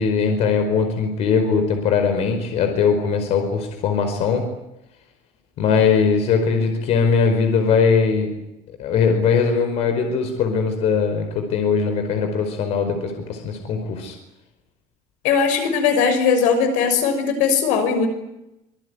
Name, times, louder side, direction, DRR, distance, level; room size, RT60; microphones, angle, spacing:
voice 1, 0.0-4.5 5.6-8.3 8.8-14.2, left 5 dB, 55° left, 6 dB, 4.8 m, -20 dB
voice 2, 15.2-18.1, left 6 dB, 80° left, 8 dB, 6.2 m, -19 dB
26.5 x 21.5 x 9.8 m, 0.90 s
cardioid pair, 165°, 13 cm